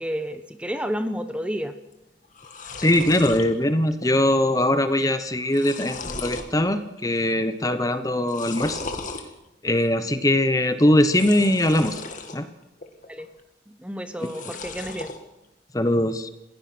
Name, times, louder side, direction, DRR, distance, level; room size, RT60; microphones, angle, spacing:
voice 1, 0.0-1.7 13.1-13.3 13.8-15.1, equal, 5° right, 9 dB, 1.0 m, -30 dB
sound 1, 1.9-2.0 2.2-3.5 3.9-4.3 4.6-4.7 5.2-6.5 7.0-7.4 8.2-9.2 11.0-12.4 12.8-13.4 14.1-15.2, left 3 dB, 45° left, 2.2 m, -36 dB
voice 2, 2.8-8.9 9.6-12.0 12.3-12.5 14.2-14.3 15.7-16.3, left 1 dB, 20° left, 10 dB, 1.0 m, -21 dB
27.5 x 16.0 x 6.2 m, 0.91 s
head